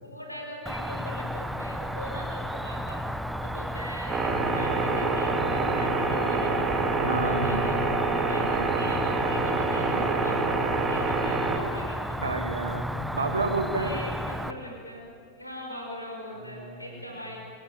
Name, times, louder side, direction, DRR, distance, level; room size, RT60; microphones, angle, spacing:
voice 1, 0.0-3.0 3.4-6.6 7.1-7.8 8.1-12.3 13.7-17.4, equal, 85° left, 0 dB, 5.0 m, -41 dB
Cricket, 0.7-14.5, equal, 5° right, 1.0 m, -33 dB
sound 1, 4.1-11.6, right 3 dB, 20° right, 2.9 m, -27 dB
voice 2, 7.0-7.6 9.9-10.1 12.2-12.8 13.1-14.1 16.4-17.0, right 3 dB, 75° right, 6 dB, 2.5 m, -30 dB
25.0 x 18.5 x 8.9 m, 2.5 s
figure-of-eight pair, 90°, 0 cm